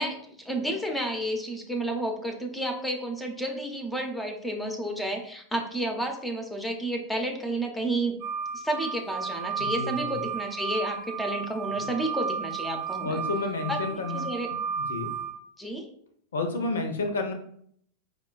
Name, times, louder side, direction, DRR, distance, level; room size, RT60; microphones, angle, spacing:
voice 1, 0.0-8.2 8.5-13.2 13.7-14.5 15.6-15.9, right 1 dB, 5° left, 3 dB, 0.6 m, -31 dB
sound 1, 8.2-15.3, right 6 dB, 40° right, 0.6 m, -33 dB
voice 2, 9.6-10.2 11.8-11.9 13.0-15.1 16.3-17.3, left 3 dB, 65° left, 6 dB, 0.5 m, -31 dB
4.9 x 2.2 x 2.3 m, 0.64 s
figure-of-eight pair, 90°, 0 cm